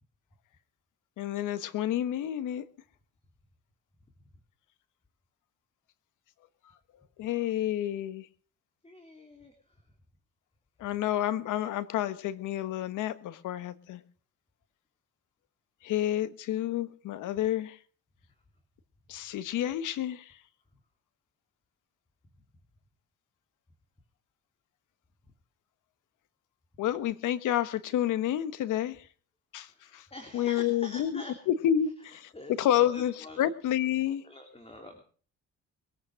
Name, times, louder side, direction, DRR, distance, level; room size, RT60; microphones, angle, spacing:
voice 1, 1.2-2.6 7.2-8.3 10.8-14.0 15.8-17.8 19.1-20.4 26.8-29.1 29.5-30.1 30.3-32.3 32.6-34.2, left 11 dB, 85° left, 14 dB, 1.3 m, -29 dB
voice 2, 8.8-9.9 18.3-18.4 29.7-31.5 32.0-32.1 32.3-33.5 34.1-35.0, left 1 dB, 20° left, 4 dB, 3.2 m, -46 dB
22.5 x 8.8 x 6.4 m, 0.44 s
cardioid pair, 90°, 30 cm